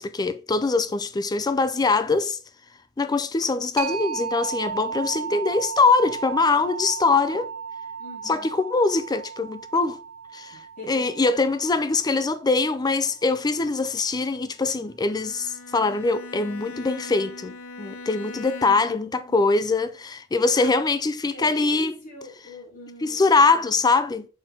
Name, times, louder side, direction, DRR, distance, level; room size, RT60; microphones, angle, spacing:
voice 1, 0.0-2.4 3.0-7.5 8.2-10.0 10.3-10.6 10.9-21.9 23.0-24.3, left 3 dB, 20° left, 0.4 m, -23 dB
sound 1, 3.8-13.2, right 6 dB, 80° right, 0.9 m, -35 dB
voice 2, 8.0-8.5 10.5-11.2 18.6-19.4 20.5-20.8 21.3-23.8, left 1 dB, 40° left, 3.6 m, -43 dB
Bowed string instrument, 15.0-19.1, left 3 dB, 90° left, 0.8 m, -40 dB
6.3 x 4.5 x 3.8 m
head